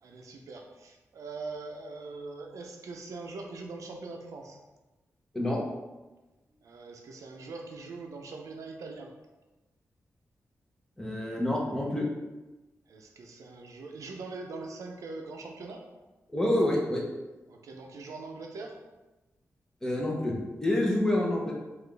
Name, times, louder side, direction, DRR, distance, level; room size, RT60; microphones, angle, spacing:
voice 1, 0.0-4.6 6.6-9.1 12.9-15.8 17.5-18.8, right 3 dB, 80° right, 2 dB, 0.5 m, -42 dB
voice 2, 11.0-12.0 16.3-17.0 19.8-20.3 20.6-21.5, left 1 dB, 10° left, -3 dB, 0.8 m, -27 dB
4.0 x 2.4 x 3.3 m, 1.1 s
wide cardioid pair, 115°, 5 cm